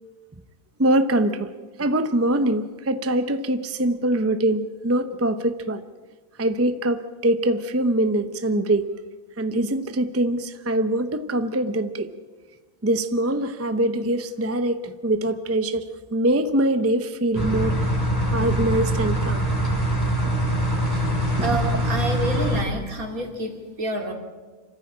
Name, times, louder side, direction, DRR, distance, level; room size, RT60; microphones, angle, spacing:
voice 1, 0.8-1.5 1.8-5.8 6.4-9.0 9.4-12.1 12.8-15.8 16.1-17.7 18.3-19.4 20.2-20.3 21.4-21.6, right 1 dB, 15° right, 10 dB, 0.7 m, -23 dB
sound 1, 17.3-22.6, equal, 10° left, 4.6 m, -23 dB
voice 2, 21.4-24.1, right 2 dB, 70° right, 3 dB, 3.2 m, -28 dB
27.0 x 14.5 x 8.7 m, 1.4 s
omnidirectional pair, 1.6 m